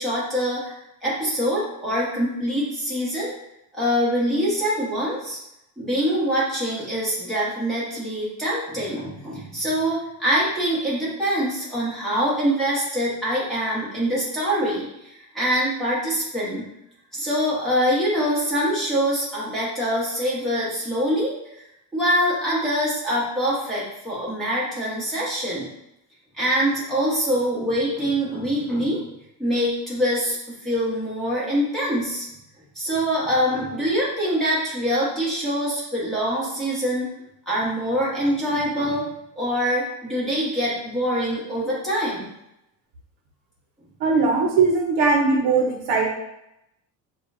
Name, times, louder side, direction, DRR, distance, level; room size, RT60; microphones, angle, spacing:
voice 1, 0.0-3.3 3.7-5.4 5.8-16.7 17.1-21.3 21.9-25.7 26.4-29.0 29.4-32.2 32.7-37.1 37.5-39.1 39.4-42.3, equal, ahead, -9 dB, 1.3 m, -24 dB
voice 2, 44.0-46.1, right 4 dB, 60° right, 0 dB, 0.9 m, -19 dB
6.1 x 2.5 x 2.6 m, 0.84 s
cardioid pair, 155°, 48 cm